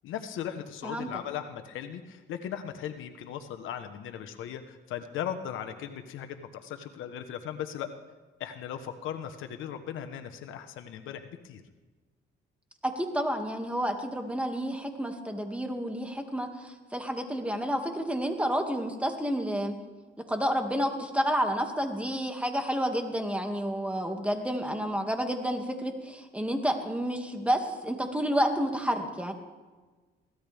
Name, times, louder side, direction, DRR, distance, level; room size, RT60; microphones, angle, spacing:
voice 1, 0.0-7.9 8.4-11.6, left 9 dB, 85° left, 8 dB, 1.3 m, -38 dB
voice 2, 12.8-19.7 20.3-29.3, equal, 5° right, 4 dB, 2.3 m, -30 dB
23.0 x 17.0 x 3.6 m, 1.3 s
cardioid pair, 90°, 20 cm